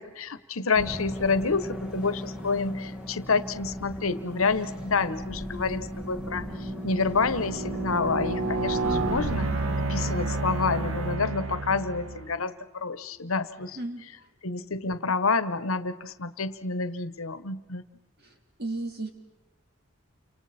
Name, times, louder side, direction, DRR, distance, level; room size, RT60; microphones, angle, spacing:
voice 1, 0.0-13.8 14.4-17.8, left 4 dB, 85° left, 14 dB, 1.2 m, -28 dB
sound 1, 0.8-11.2, equal, 5° right, 2.1 m, -37 dB
sound 2, 4.8-5.0 5.6-12.4, right 3 dB, 85° right, 1.5 m, -31 dB
voice 2, 18.6-19.1, right 2 dB, 50° right, 3 dB, 3.6 m, -32 dB
30.0 x 27.0 x 4.3 m, 1.2 s
head